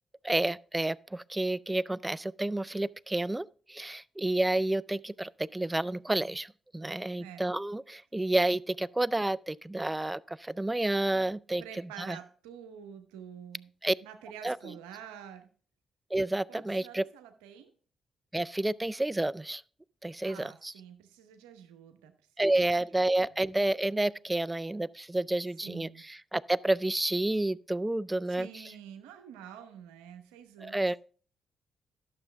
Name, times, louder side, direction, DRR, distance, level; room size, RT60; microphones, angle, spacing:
voice 1, 0.2-11.6 12.0-12.2 13.8-13.9 14.4-14.6 16.1-17.0 18.3-19.6 20.0-20.7 22.4-28.5 30.6-31.0, right 2 dB, 15° right, 0.3 m, -30 dB
voice 2, 7.2-7.5 11.6-13.7 14.0-15.5 16.5-17.7 20.0-22.1 25.6-26.1 28.3-31.0, right 9 dB, 90° right, 0.9 m, -48 dB
11.5 x 6.8 x 3.4 m
hypercardioid pair, 45°, 0 cm